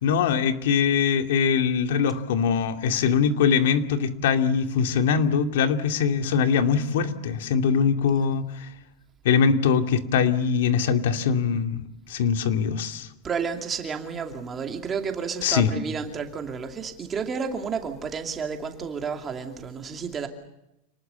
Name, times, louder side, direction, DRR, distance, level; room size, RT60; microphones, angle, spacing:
voice 1, 0.0-8.7 9.2-13.1 15.4-15.7, left 6 dB, 70° left, 7 dB, 2.4 m, -22 dB
voice 2, 13.2-20.3, right 6 dB, 15° right, 5 dB, 2.6 m, -31 dB
28.5 x 19.5 x 6.9 m, 0.89 s
supercardioid pair, 170°, 0 cm